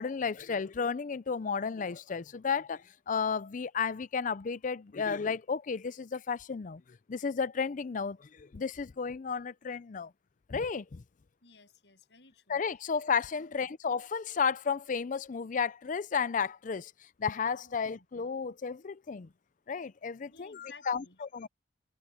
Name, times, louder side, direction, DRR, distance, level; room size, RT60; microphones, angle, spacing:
voice 1, 0.0-6.8 7.1-10.1 10.5-11.0 12.5-16.9 17.2-19.3 19.7-21.5, left 5 dB, 45° left, 0.5 m, -33 dB
voice 2, 11.4-12.6 13.4-13.7 17.6-18.0 20.3-21.2, left 4 dB, 75° left, 8.0 m, -56 dB
head